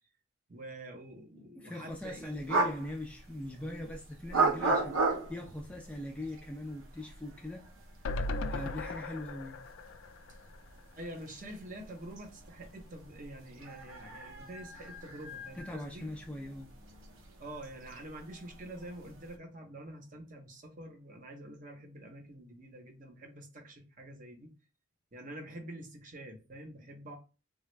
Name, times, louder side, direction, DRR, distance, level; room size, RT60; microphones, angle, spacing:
voice 1, 0.5-2.4 3.7-3.9 8.3-8.6 10.9-16.1 17.4-24.5 25.1-27.2, right 1 dB, 40° right, 0.7 m, -47 dB
voice 2, 1.6-5.0 5.3-7.7 8.5-9.6 15.5-16.7, left 1 dB, 5° left, 0.3 m, -41 dB
sound 1, 1.9-19.4, right 3 dB, 85° right, 0.7 m, -38 dB
sound 2, 8.0-11.3 11.6-11.7 12.0-12.1, left 2 dB, 85° left, 0.4 m, -38 dB
3.3 x 2.3 x 3.1 m
head